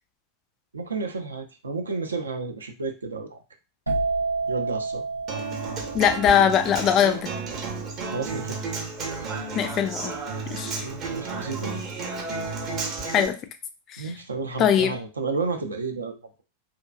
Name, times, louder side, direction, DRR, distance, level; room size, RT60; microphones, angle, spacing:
voice 1, 0.7-3.4 4.5-5.0 8.1-8.6 10.8-11.8 14.0-16.4, right 4 dB, 75° right, 5 dB, 0.4 m, -31 dB
sound 1, 3.9-11.4 11.7-12.2, right 3 dB, 90° left, 0.5 m, -31 dB
Human voice / Acoustic guitar, 5.3-13.3, right 4 dB, 35° right, 0.7 m, -32 dB
voice 2, 5.9-7.3 9.6-10.1 10.5-10.7 13.1-13.4 14.6-14.9, left 9 dB, 35° left, 9 dB, 0.3 m, -21 dB
2.5 x 2.2 x 2.3 m, 0.31 s
figure-of-eight pair, 90°, 0 cm